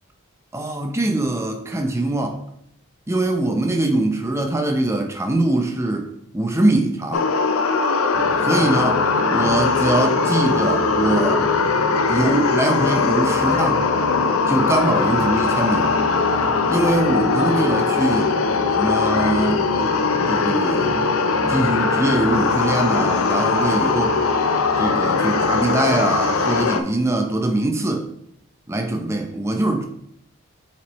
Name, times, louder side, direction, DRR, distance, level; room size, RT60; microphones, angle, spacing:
voice 1, 0.5-2.4 3.1-6.1 6.3-7.3 8.4-9.0 9.3-11.5 12.1-13.9 14.5-16.0 16.7-18.3 18.8-19.6 20.3-21.0 21.5-24.2 24.8-28.1 28.7-29.8, right 2 dB, 10° right, 0.5 m, -22 dB
sound 1, 7.1-26.8, left 4 dB, 70° left, 0.5 m, -20 dB
sound 2, 8.1-26.6, left 1 dB, 40° right, 1.5 m, -31 dB
7.0 x 4.5 x 3.0 m
head